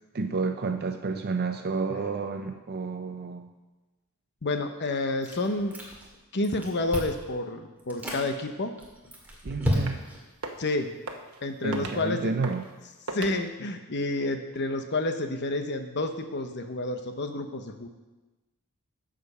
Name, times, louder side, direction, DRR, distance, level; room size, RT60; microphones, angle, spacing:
voice 1, 0.1-3.5 9.4-10.0 11.6-12.6, right 4 dB, 45° right, 7 dB, 0.5 m, -30 dB
voice 2, 4.4-5.8 6.3-8.7 10.6-10.9 11.4-12.3 13.1-17.9, left 2 dB, 50° left, 7 dB, 0.9 m, -29 dB
Chewing mastication, 5.2-6.2 6.4-7.3 7.8-8.2 8.8-10.2, equal, 10° right, 2.0 m, -32 dB
sound 1, 9.8-10.1 10.3-10.7 11.1-11.4 11.7-12.0 12.4-12.7 13.1-13.4, right 3 dB, 70° right, 1.1 m, -37 dB
14.5 x 5.2 x 5.5 m, 1.1 s
head